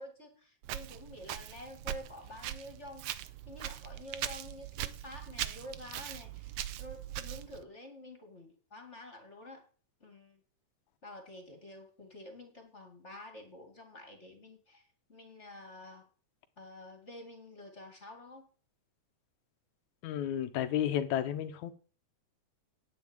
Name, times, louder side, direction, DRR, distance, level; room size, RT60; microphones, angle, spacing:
voice 1, 0.0-3.1 3.5-6.5 6.8-9.7 10.0-10.4 11.0-14.8 15.1-16.1 16.6-18.5, left 1 dB, 25° left, 2.3 m, -49 dB
Walk footsteps, 0.6-7.6, right 12 dB, 75° right, 1.5 m, -41 dB
voice 2, 20.0-21.7, left 10 dB, 75° left, 2.4 m, -32 dB
9.5 x 9.0 x 9.0 m
omnidirectional pair, 3.4 m